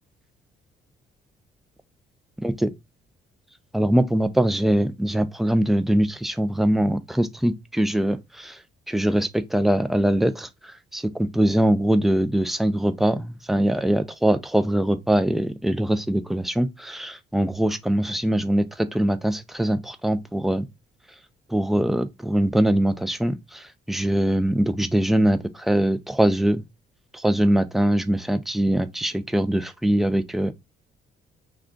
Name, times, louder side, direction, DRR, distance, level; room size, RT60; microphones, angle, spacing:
voice 1, 2.4-2.7 3.7-8.6 8.9-20.7 21.5-26.6 27.1-30.5, right 1 dB, ahead, 0.4 m, -22 dB
2.3 x 2.3 x 3.7 m
cardioid pair, 90°, 20 cm